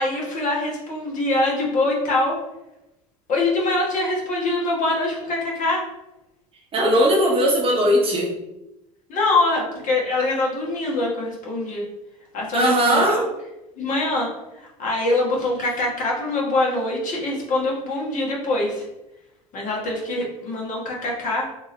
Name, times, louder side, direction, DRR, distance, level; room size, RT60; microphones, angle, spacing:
voice 1, 0.0-2.4 3.3-5.9 9.1-11.8 12.3-13.2 13.8-14.3 14.5-18.8 19.5-21.5, left 2 dB, 45° left, -3 dB, 1.4 m, -24 dB
voice 2, 6.7-8.3 12.5-13.2, equal, 30° right, -1 dB, 0.9 m, -18 dB
3.5 x 2.6 x 3.2 m, 0.95 s
hypercardioid pair, 80°, 19 cm